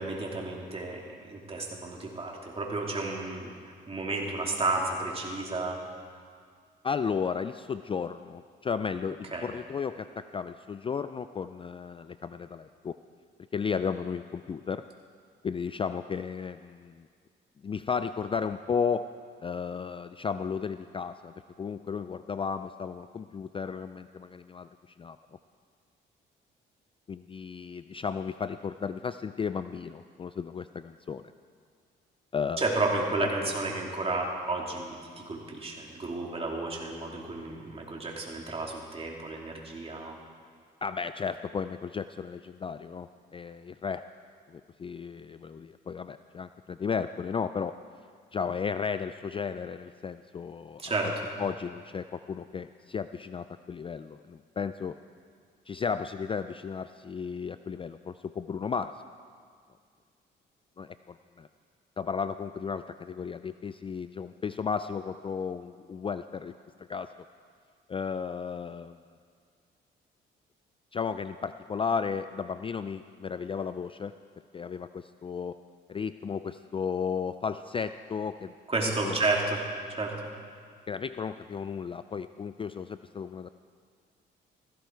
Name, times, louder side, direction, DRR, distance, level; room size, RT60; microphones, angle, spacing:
voice 1, 0.0-5.8 9.3-9.5 32.6-40.2 50.8-51.1 78.7-79.6 80.0-80.1, right 3 dB, 30° right, -1 dB, 2.8 m, -32 dB
voice 2, 6.8-13.0 13.5-14.8 15.4-17.1 17.6-19.1 19.4-24.7 25.0-25.2 27.1-31.3 32.3-32.7 33.2-33.3 40.8-44.0 44.5-47.7 48.3-51.1 51.4-55.0 55.7-58.9 60.8-61.5 62.0-66.5 66.8-67.2 67.9-69.0 70.9-74.1 74.5-75.6 75.9-78.5 79.0-79.2 80.9-83.5, left 6 dB, 25° left, 11 dB, 0.3 m, -34 dB
16.0 x 15.0 x 4.6 m, 2.1 s
cardioid pair, 90°, 20 cm